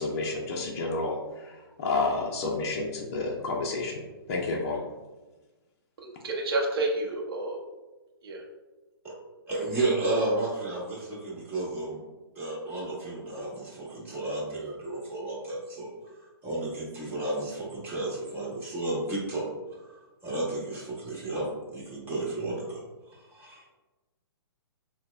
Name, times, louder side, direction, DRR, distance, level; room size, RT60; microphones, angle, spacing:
voice 1, 0.0-4.0 4.3-4.8, left 3 dB, 40° left, -2 dB, 0.5 m, -30 dB
voice 2, 6.0-7.6 8.2-8.4, right 2 dB, 70° right, 0 dB, 0.7 m, -29 dB
voice 3, 9.5-12.0 12.3-19.4 19.7-22.8 23.1-23.6, right 2 dB, 15° right, -6 dB, 1.2 m, -32 dB
6.3 x 2.1 x 2.3 m, 1.2 s
hypercardioid pair, 150°, 13 cm